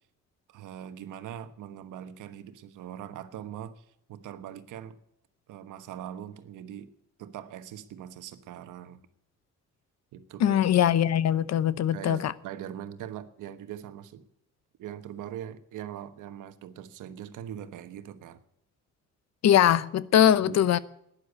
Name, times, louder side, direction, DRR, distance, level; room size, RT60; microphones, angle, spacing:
voice 1, 0.5-5.0 5.5-6.9 7.2-9.0 10.1-10.6 11.9-14.3 14.8-18.4 20.4-20.7, right 10 dB, 85° right, 1.2 m, -41 dB
voice 2, 10.4-12.3 19.4-20.8, left 10 dB, 60° left, 0.8 m, -22 dB
12.0 x 10.0 x 8.1 m
cardioid pair, 90°, 30 cm